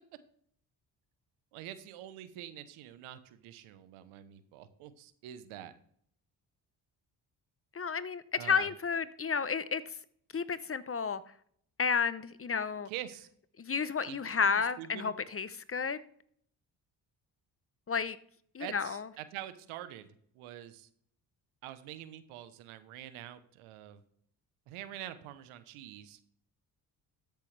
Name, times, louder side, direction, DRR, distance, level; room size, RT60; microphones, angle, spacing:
voice 1, 1.5-5.7 8.4-8.7 12.9-13.3 14.1-14.5 14.8-15.1 18.6-20.1 20.3-20.9 21.6-24.0 24.7-26.2, right 12 dB, 85° right, 12 dB, 1.0 m, -45 dB
voice 2, 7.7-9.8 10.3-11.2 11.8-12.9 13.6-16.0 17.9-18.2 18.5-19.1, left 6 dB, 30° left, 15 dB, 0.7 m, -31 dB
13.5 x 6.9 x 3.3 m, 0.62 s
hypercardioid pair, 50°, 49 cm